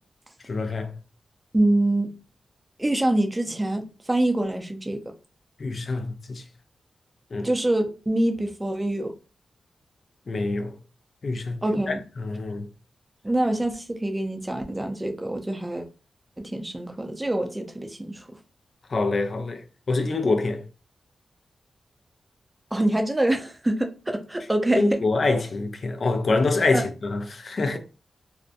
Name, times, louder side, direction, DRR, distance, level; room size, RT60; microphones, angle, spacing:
voice 1, 0.5-0.9 5.6-6.4 7.3-7.5 10.3-10.8 11.2-11.6 11.9-12.7 18.9-20.6 24.7-27.8, left 3 dB, 55° left, 0.4 m, -25 dB
voice 2, 1.5-2.1 2.8-5.0 7.4-9.1 11.6-12.0 13.2-15.9 16.4-18.2 22.7-25.0 26.7-26.8, right 1 dB, 20° right, 0.5 m, -25 dB
2.6 x 2.1 x 2.5 m
cardioid pair, 60°, 0 cm